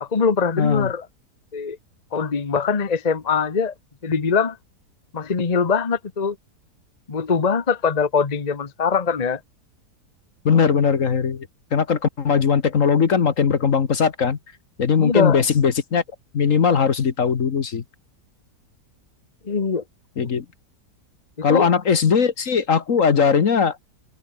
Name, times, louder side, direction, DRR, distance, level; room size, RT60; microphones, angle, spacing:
voice 1, 0.0-1.1 1.5-1.8 2.1-3.7 4.0-4.6 5.1-6.4 7.1-9.4 15.0-15.4 19.4-19.8 20.2-20.3 21.4-21.7, left 5 dB, 25° left, 1.1 m, -22 dB
voice 2, 0.6-0.9 10.4-14.4 14.8-16.0 16.3-17.8 20.2-20.4 21.4-23.8, left 6 dB, 50° left, 1.6 m, -19 dB
open air
omnidirectional pair, 1.8 m